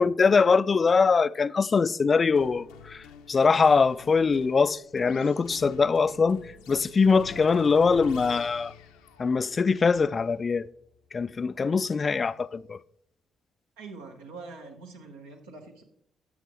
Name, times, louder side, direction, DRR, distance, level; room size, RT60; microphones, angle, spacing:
voice 1, 0.0-6.4 6.7-8.7 9.2-10.7 11.1-12.8, left 5 dB, 40° left, 0.3 m, -23 dB
sound 1, 2.4-12.1, left 7 dB, 80° left, 0.6 m, -47 dB
voice 2, 13.8-15.8, right 4 dB, 85° right, 1.2 m, -44 dB
12.0 x 7.5 x 3.0 m
hypercardioid pair, 45°, 0 cm